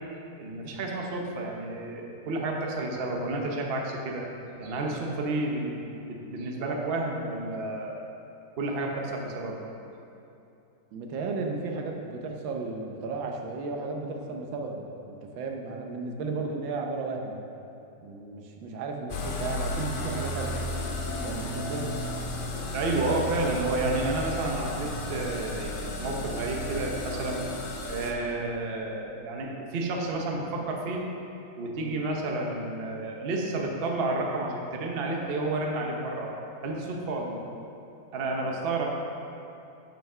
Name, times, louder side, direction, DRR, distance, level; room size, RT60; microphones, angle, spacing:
voice 1, 0.4-4.2 4.6-8.0 8.6-9.6 22.7-25.7 26.0-27.4 27.9-31.0 31.6-36.3 36.6-37.5 38.1-38.9, right 2 dB, 45° right, 0 dB, 0.8 m, -30 dB
voice 2, 10.9-17.4 18.0-20.6 21.2-21.9, right 3 dB, 90° right, 2 dB, 1.6 m, -34 dB
sound 1, 19.1-28.1, left 1 dB, 75° left, 0.5 m, -33 dB
7.6 x 5.7 x 5.5 m, 2.8 s
omnidirectional pair, 2.0 m